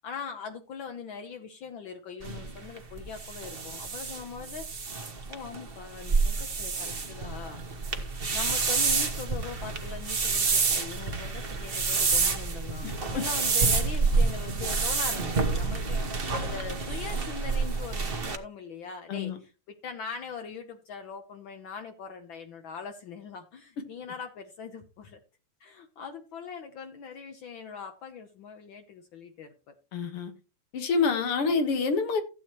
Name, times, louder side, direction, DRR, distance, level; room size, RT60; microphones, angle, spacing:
voice 1, 0.0-5.0 5.3-7.6 8.3-25.2 25.6-29.7, left 6 dB, 65° left, 1.6 m, -41 dB
sound 1, 2.2-18.4, right 4 dB, 40° right, 0.9 m, -28 dB
voice 2, 29.9-30.3 30.7-32.2, left 4 dB, 85° left, 2.5 m, -27 dB
15.5 x 8.4 x 3.0 m
omnidirectional pair, 2.4 m